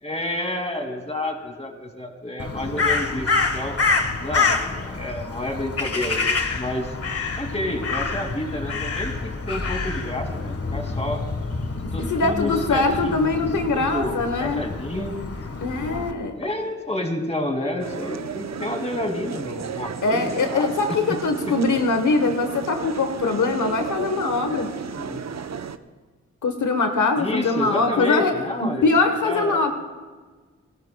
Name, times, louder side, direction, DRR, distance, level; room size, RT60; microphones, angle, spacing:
voice 1, 0.0-3.8 4.2-6.3 6.5-6.9 7.4-11.2 11.9-13.3 13.7-15.2 16.4-21.2 21.5-21.8 22.2-22.3 25.0-25.3 27.2-28.9 29.2-29.7, left 1 dB, 20° left, 4 dB, 2.3 m, -30 dB
Crow, 2.4-16.1, left 4 dB, 50° left, 1.3 m, -27 dB
voice 2, 11.9-14.6 15.6-16.4 20.0-24.7 26.4-28.3 28.6-29.7, left 3 dB, 80° left, 6 dB, 1.0 m, -22 dB
sound 1, 17.8-25.8, right 6 dB, 65° right, 0.7 m, -33 dB
28.5 x 12.0 x 2.2 m, 1.4 s
cardioid pair, 40°, 30 cm